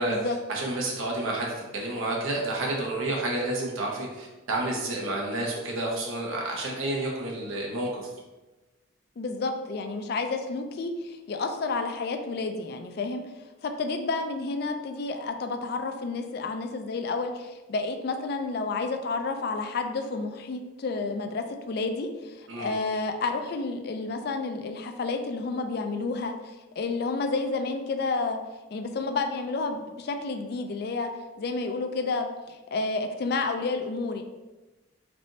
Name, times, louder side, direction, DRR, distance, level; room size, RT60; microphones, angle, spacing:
voice 1, 0.5-1.5 1.7-8.0 22.5-22.7, right 2 dB, 90° right, -2 dB, 1.0 m, -30 dB
voice 2, 9.2-13.2 13.6-28.4 28.7-31.1 31.4-34.2, left 3 dB, 50° left, 6 dB, 0.3 m, -30 dB
3.3 x 2.5 x 3.9 m, 1.1 s
head